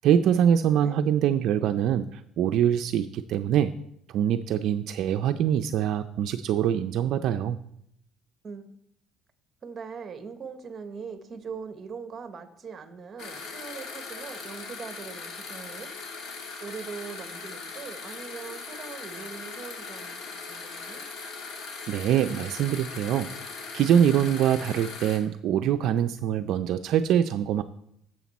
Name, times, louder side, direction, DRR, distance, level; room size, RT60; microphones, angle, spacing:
voice 1, 0.0-3.7 4.1-7.6 21.9-23.3 23.7-27.6, right 9 dB, 60° right, 8 dB, 0.4 m, -24 dB
voice 2, 9.6-15.9 16.6-21.0, right 5 dB, 30° right, 9 dB, 1.1 m, -41 dB
sound 1, 13.2-25.2, left 4 dB, 60° left, 2.2 m, -39 dB
12.0 x 7.7 x 4.2 m, 0.75 s
cardioid pair, 125°, 0 cm